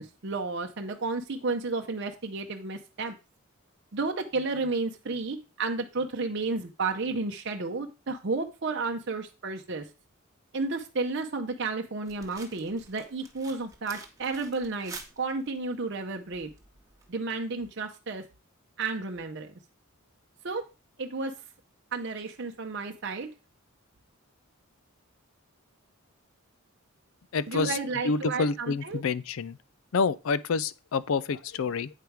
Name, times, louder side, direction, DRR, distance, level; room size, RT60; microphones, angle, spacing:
voice 1, 0.0-3.1 3.9-9.9 10.5-16.5 17.1-18.2 18.8-19.5 20.4-20.6 21.0-21.3 21.9-23.3 27.5-29.0, right 3 dB, 50° right, 0.7 m, -32 dB
sound 1, 12.1-17.1, right 4 dB, 15° right, 1.1 m, -49 dB
voice 2, 27.3-27.8 28.0-29.6 29.9-31.9, left 4 dB, 70° left, 0.4 m, -28 dB
8.3 x 5.1 x 4.6 m
head